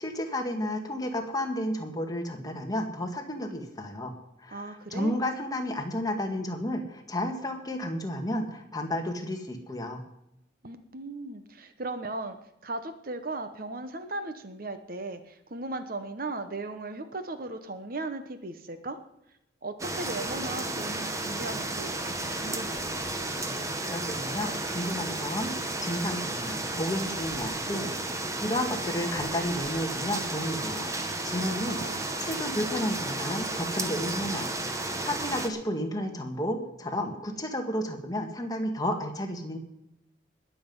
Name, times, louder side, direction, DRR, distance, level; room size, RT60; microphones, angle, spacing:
voice 1, 0.0-4.1 4.4-10.0 23.4-30.9 31.2-31.8 32.2-39.6, left 1 dB, 20° left, 3 dB, 1.9 m, -32 dB
voice 2, 4.5-5.1 10.6-12.4 12.6-19.0 19.6-22.8 31.4-32.1, right 2 dB, 50° right, 9 dB, 1.1 m, -37 dB
sound 1, 19.8-35.5, right 2 dB, 15° right, 1.3 m, -33 dB
20.5 x 7.8 x 5.5 m, 0.83 s
head